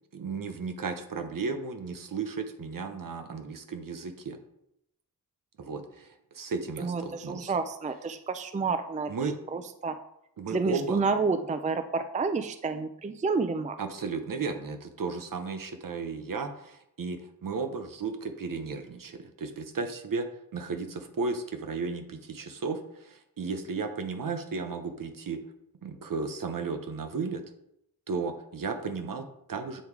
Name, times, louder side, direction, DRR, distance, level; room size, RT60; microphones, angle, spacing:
voice 1, 0.1-4.4 5.6-7.5 9.1-9.4 10.4-11.0 13.8-20.3 20.5-25.4 25.8-27.4 28.1-29.8, right 4 dB, 65° right, 7 dB, 0.9 m, -34 dB
voice 2, 6.8-9.1 9.5-10.0 10.5-13.8, right 4 dB, 20° right, 9 dB, 0.4 m, -29 dB
7.8 x 3.4 x 4.7 m, 0.79 s
wide cardioid pair, 80°, 36 cm